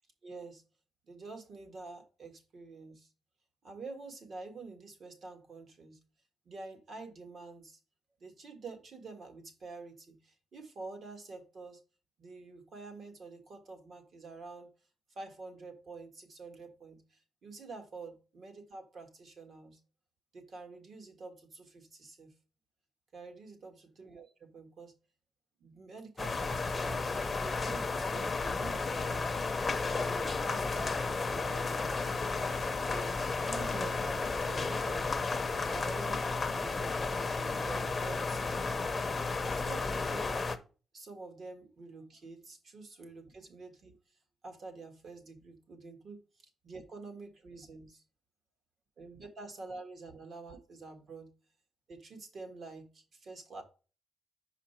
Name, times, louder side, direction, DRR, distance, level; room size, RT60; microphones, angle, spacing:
voice 1, 0.2-0.6 1.0-3.1 3.6-6.0 6.4-7.8 8.2-11.8 12.2-14.7 15.1-19.8 20.3-22.3 23.1-24.9 25.6-29.4 29.9-32.3 32.9-35.2 35.7-38.8 39.4-40.5 40.9-43.9 44.4-48.0 49.0-51.3 51.9-53.6, right 3 dB, 50° right, 1.6 m, -48 dB
sound 1, 26.2-40.6, left 4 dB, 25° left, 0.7 m, -33 dB
5.8 x 5.0 x 4.3 m
cardioid pair, 135°, 0 cm